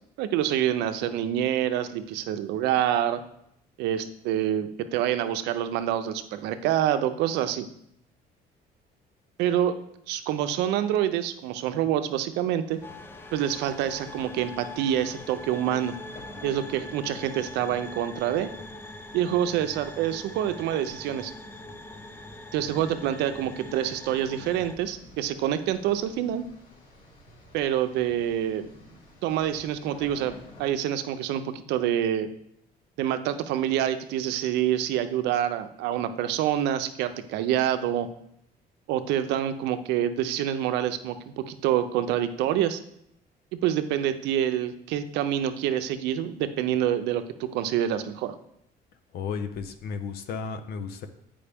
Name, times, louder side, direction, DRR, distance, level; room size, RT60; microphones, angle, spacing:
voice 1, 0.2-3.2 3.8-7.7 9.4-9.8 10.1-12.8 13.3-15.9 16.4-18.5 19.1-21.3 22.5-26.5 27.5-28.7 29.2-32.3 33.0-38.1 38.9-42.8 43.5-48.3, right 11 dB, 90° right, 10 dB, 0.5 m, -27 dB
sound 1, 12.7-30.7, left 1 dB, 55° left, 3.0 m, -51 dB
sound 2, 12.8-24.8, left 2 dB, 15° left, 0.4 m, -43 dB
voice 2, 49.1-51.1, left 5 dB, 70° left, 8 dB, 0.6 m, -33 dB
8.5 x 5.0 x 3.4 m, 0.73 s
cardioid pair, 110°, 17 cm